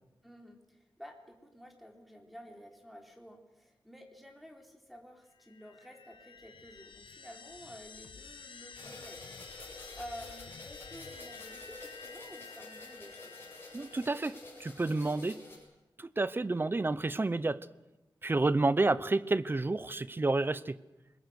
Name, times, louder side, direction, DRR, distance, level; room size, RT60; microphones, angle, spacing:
voice 1, 0.2-13.4, equal, ahead, 2 dB, 3.9 m, -51 dB
sound 1, 5.4-14.6, left 5 dB, 90° left, 1.5 m, -51 dB
sound 2, 8.7-15.6, left 2 dB, 30° left, 7.4 m, -49 dB
voice 2, 13.7-14.3 14.6-15.4 16.0-17.6 18.2-20.8, right 2 dB, 25° right, 17 dB, 0.7 m, -29 dB
27.5 x 21.5 x 6.5 m, 1.0 s
wide cardioid pair, 140°, 8 cm